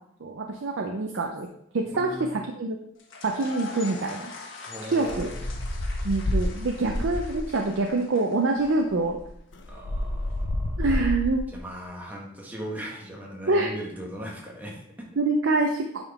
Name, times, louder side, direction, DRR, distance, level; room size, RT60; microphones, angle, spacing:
voice 1, 0.2-1.5 1.7-2.8 3.2-4.3 4.9-5.3 6.0-9.2 10.8-11.5 13.5-13.7 15.2-16.0, right 3 dB, 75° right, 2 dB, 0.6 m, -25 dB
voice 2, 1.8-2.3 4.7-5.6 9.6-10.8 11.5-15.1, equal, 10° right, -2 dB, 1.2 m, -39 dB
sound 1, 3.0-9.0, left 4 dB, 85° left, 1.3 m, -43 dB
sound 2, 5.0-7.6 8.6-8.7 9.0-11.6, left 1 dB, 65° left, 0.6 m, -30 dB
9.0 x 3.7 x 3.5 m, 0.74 s
head